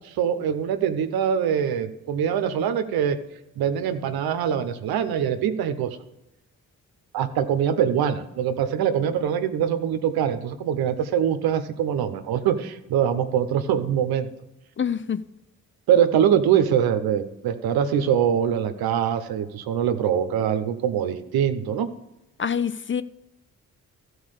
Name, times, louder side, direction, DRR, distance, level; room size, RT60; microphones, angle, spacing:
voice 1, 0.0-3.2 3.6-6.0 7.1-14.3 15.9-21.9, right 9 dB, 85° right, 9 dB, 0.9 m, -23 dB
voice 2, 14.8-15.2 22.4-23.0, left 7 dB, 35° left, 14 dB, 0.6 m, -26 dB
13.5 x 4.8 x 6.5 m, 0.94 s
supercardioid pair, 45°, 36 cm